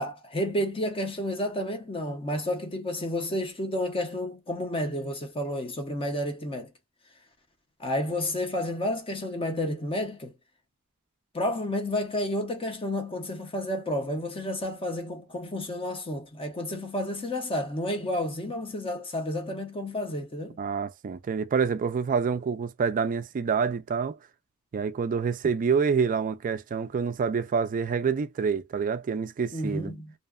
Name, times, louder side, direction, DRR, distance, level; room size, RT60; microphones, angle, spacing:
voice 1, 0.0-6.7 7.8-10.3 11.3-20.6 29.5-30.1, left 1 dB, 25° left, 0.5 m, -31 dB
voice 2, 20.6-24.2 24.7-29.9, right 6 dB, 40° right, 0.3 m, -27 dB
2.7 x 2.1 x 2.3 m
head